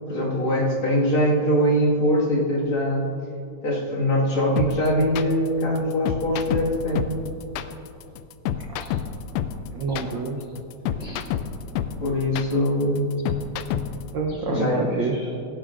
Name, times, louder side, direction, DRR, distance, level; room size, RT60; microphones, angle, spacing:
voice 1, 0.1-3.1 3.6-7.1 12.0-13.1 14.5-15.1, equal, 50° left, -5 dB, 2.5 m, -22 dB
sound 1, 4.6-14.1, left 10 dB, 80° left, 1.6 m, -28 dB
voice 2, 9.7-10.4 11.0-11.2 14.1-15.3, right 3 dB, 80° right, 0 dB, 1.0 m, -28 dB
17.5 x 14.5 x 2.5 m, 2.8 s
omnidirectional pair, 3.4 m